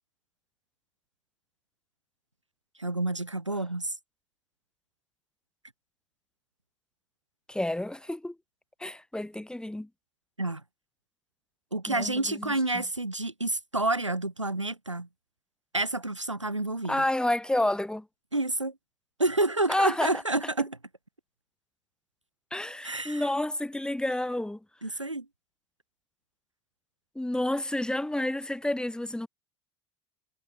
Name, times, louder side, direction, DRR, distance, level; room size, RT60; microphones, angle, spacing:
voice 1, 2.8-3.9 10.4-10.6 11.7-15.1 15.7-17.0 18.3-18.7 19.2-20.8 22.8-23.2 24.8-25.3, right 2 dB, 90° right, 1.0 m, -29 dB
voice 2, 7.5-8.4 8.8-9.9 11.9-12.8 16.9-18.1 19.7-20.2 22.5-24.6 27.2-29.3, left 1 dB, 5° left, 5.8 m, -30 dB
figure-of-eight pair, 70°, 15 cm